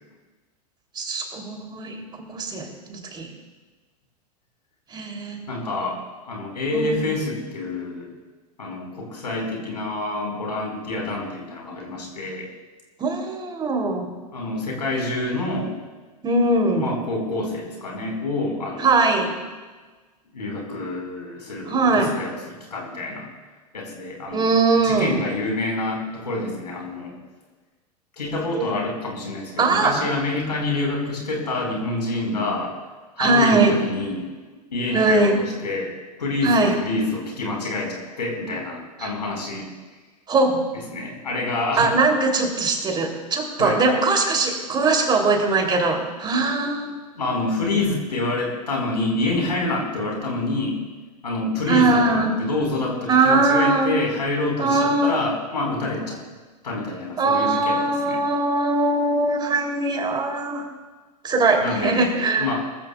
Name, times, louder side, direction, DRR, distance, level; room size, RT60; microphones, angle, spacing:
voice 1, 0.9-3.3 4.9-5.4 6.7-7.1 13.0-14.1 16.2-16.9 18.8-19.4 21.7-22.2 24.3-25.2 28.5-28.7 29.6-30.1 33.2-33.8 34.9-35.4 36.4-36.8 39.0-39.1 40.3-40.6 41.8-47.0 51.7-52.3 53.1-54.0 54.6-55.2 57.2-60.7 61.2-62.5, right 3 dB, 20° right, 2 dB, 3.1 m, -21 dB
voice 2, 5.5-6.0 6.2-8.1 8.6-12.5 14.3-15.8 16.8-19.1 20.3-23.3 23.7-27.1 28.2-32.7 33.2-34.2 34.7-35.9 36.2-39.7 40.9-41.9 43.6-43.8 47.1-50.8 51.2-56.2 56.6-58.2 61.6-62.0 62.4-62.5, left 2 dB, 80° left, 0 dB, 4.6 m, -27 dB
23.5 x 14.5 x 2.4 m, 1.3 s
hypercardioid pair, 95°, 21 cm